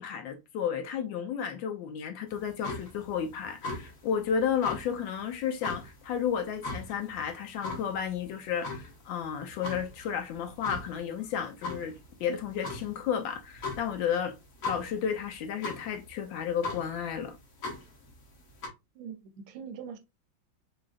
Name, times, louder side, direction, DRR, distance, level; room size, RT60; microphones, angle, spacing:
voice 1, 0.0-11.9 12.2-14.3 14.7-17.4, left 8 dB, 75° left, 1.2 m, -32 dB
sound 1, 2.3-18.7, left 3 dB, 55° left, 1.0 m, -41 dB
voice 2, 18.9-20.0, right 7 dB, 80° right, 1.3 m, -42 dB
3.9 x 2.4 x 2.3 m
omnidirectional pair, 2.2 m